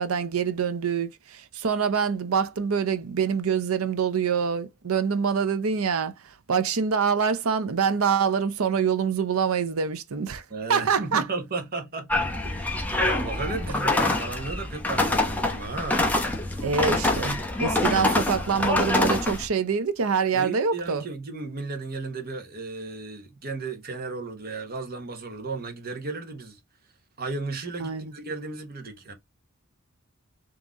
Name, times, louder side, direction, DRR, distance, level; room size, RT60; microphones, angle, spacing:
voice 1, 0.0-10.4 10.7-11.3 16.6-21.0 27.8-28.1, right 6 dB, 75° right, 0.6 m, -25 dB
voice 2, 10.5-12.7 13.0-16.1 20.3-26.6 27.2-29.1, right 3 dB, 45° right, 1.1 m, -34 dB
sound 1, 12.1-19.5, left 2 dB, 10° left, 0.9 m, -25 dB
3.8 x 2.9 x 3.5 m
head